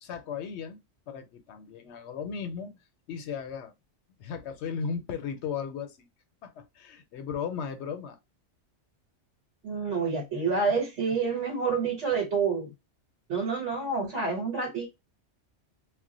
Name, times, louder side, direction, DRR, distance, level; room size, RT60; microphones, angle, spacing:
voice 1, 0.0-2.8 3.1-3.7 4.2-6.1 6.4-8.2, left 6 dB, 75° left, 0.9 m, -36 dB
voice 2, 9.6-12.7 13.3-14.9, right 4 dB, 80° right, 1.3 m, -28 dB
2.4 x 2.1 x 3.7 m
omnidirectional pair, 1.2 m